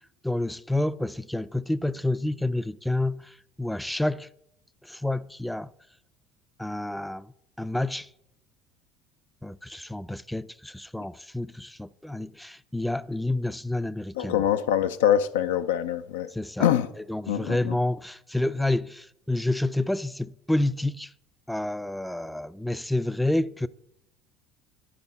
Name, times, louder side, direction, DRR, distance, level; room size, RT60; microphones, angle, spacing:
voice 1, 0.2-4.3 4.8-5.7 6.6-7.3 7.6-8.1 9.4-14.4 16.3-16.7 17.1-21.1 21.5-23.7, left 2 dB, 5° left, 0.4 m, -29 dB
voice 2, 14.2-16.3 16.6-16.9 17.3-17.7, left 10 dB, 80° left, 0.4 m, -24 dB
11.0 x 5.3 x 4.1 m
hypercardioid pair, 70°, 0 cm